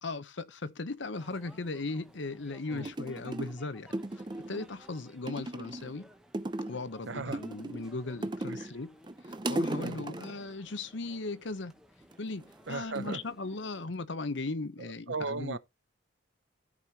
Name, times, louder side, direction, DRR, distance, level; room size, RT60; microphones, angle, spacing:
voice 1, 0.0-4.0 4.5-6.1 6.7-9.0 9.2-11.7 12.2-15.6, left 3 dB, 65° left, 0.8 m, -37 dB
sound 1, 1.1-13.7, equal, 5° right, 1.0 m, -58 dB
sound 2, 2.4-2.5 2.9-3.6 3.9-4.7 5.3-6.0 6.3-6.9 7.3-8.7 9.0-10.4 12.0-12.5 13.0-14.0 14.3-14.8, right 1 dB, 25° right, 0.6 m, -37 dB
voice 2, 7.1-7.4 8.5-8.7 9.8-10.1 12.7-13.2 14.8-15.6, right 4 dB, 65° right, 0.7 m, -37 dB
14.5 x 5.0 x 2.8 m
head